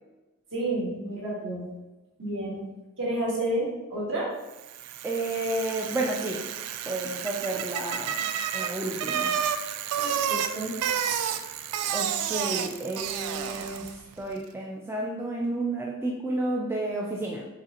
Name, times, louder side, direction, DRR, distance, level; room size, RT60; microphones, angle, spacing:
voice 1, 0.5-1.7 2.2-2.7 3.0-4.3 10.0-10.8, right 1 dB, 60° right, -5 dB, 1.5 m, -30 dB
Bicycle, 4.6-14.0, right 9 dB, 90° right, 0.3 m, -31 dB
voice 2, 5.0-6.4 6.8-9.3 11.9-17.5, right 2 dB, 10° right, -2 dB, 0.3 m, -31 dB
4.9 x 3.0 x 2.9 m, 1.1 s
head